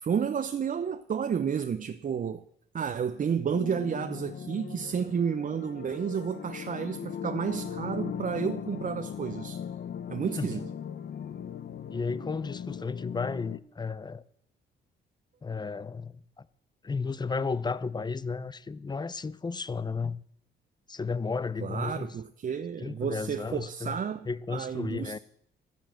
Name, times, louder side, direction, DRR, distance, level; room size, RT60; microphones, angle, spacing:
voice 1, 0.0-2.4 2.7-9.6 10.1-10.7 21.6-25.2, right 7 dB, 40° right, 0.8 m, -31 dB
sound 1, 3.5-13.6, left 8 dB, 50° left, 0.9 m, -39 dB
voice 2, 11.9-14.2 15.4-16.5 16.8-20.2 20.9-22.1 22.8-24.0 24.3-25.2, left 4 dB, 20° left, 0.7 m, -33 dB
12.5 x 10.5 x 7.7 m
cardioid pair, 90°, 20 cm